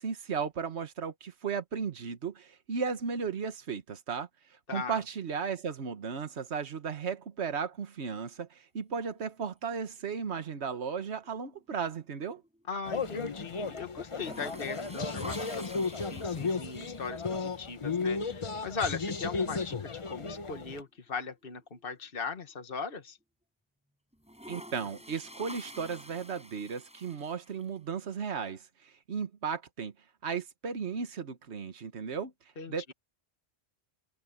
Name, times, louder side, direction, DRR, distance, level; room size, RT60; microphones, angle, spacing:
voice 1, 0.0-4.3 4.7-12.4 24.5-29.9 30.2-32.3 32.7-32.9, right 6 dB, 75° right, 1.5 m, -35 dB
voice 2, 4.7-5.0 12.7-23.2 32.6-32.9, left 5 dB, 55° left, 1.7 m, -39 dB
sound 1, 10.0-10.8 11.1-13.1 13.4-13.5 14.0-17.7 19.2-19.3 19.7-19.8 20.1-22.5 23.0-23.1 24.1-27.8, equal, 5° right, 7.1 m, -49 dB
sound 2, 12.8-20.8, left 4 dB, 30° left, 0.8 m, -34 dB
omnidirectional pair, 1.1 m